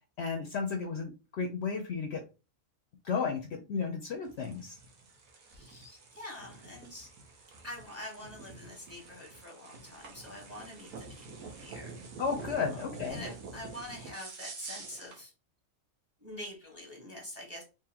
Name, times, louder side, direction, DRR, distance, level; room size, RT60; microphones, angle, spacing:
voice 1, 0.2-2.2 3.0-4.8 12.2-13.2, left 5 dB, 65° left, 4 dB, 0.7 m, -33 dB
sound 1, 4.2-15.2, right 3 dB, 90° right, 1.3 m, -47 dB
voice 2, 5.5-12.0 12.7-15.3 16.2-17.6, left 1 dB, 10° right, -1 dB, 1.0 m, -46 dB
3.8 x 2.9 x 2.8 m, 0.31 s
omnidirectional pair, 1.4 m